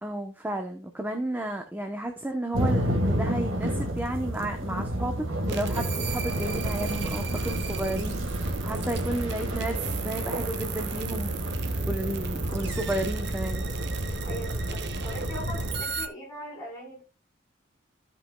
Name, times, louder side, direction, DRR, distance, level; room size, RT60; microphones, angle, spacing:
voice 1, 0.0-5.1 5.5-8.2 8.6-11.4 11.9-13.6, right 1 dB, 10° right, 4 dB, 0.9 m, -32 dB
sound 1, 2.5-15.8, equal, 80° right, 1.8 m, -31 dB
sound 2, 5.5-16.1, right 4 dB, 60° right, 0.9 m, -34 dB
voice 2, 14.3-17.0, right 1 dB, 15° left, -3 dB, 4.9 m, -40 dB
16.0 x 5.4 x 2.3 m, 0.28 s
head